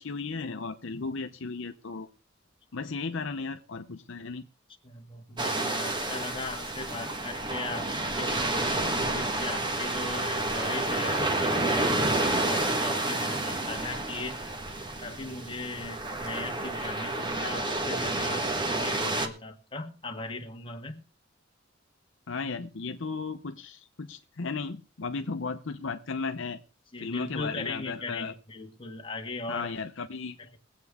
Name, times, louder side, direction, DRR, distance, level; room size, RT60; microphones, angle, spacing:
voice 1, 0.0-2.1 2.7-4.5 22.3-26.6 27.0-28.3 29.5-30.4, left 4 dB, 65° left, 0.8 m, -35 dB
voice 2, 4.8-14.4 15.0-21.0 26.9-29.7 30.4-30.6, left 3 dB, 25° left, 1.6 m, -39 dB
sound 1, 5.4-19.3, right 2 dB, 25° right, 1.4 m, -29 dB
21.5 x 8.2 x 3.5 m
head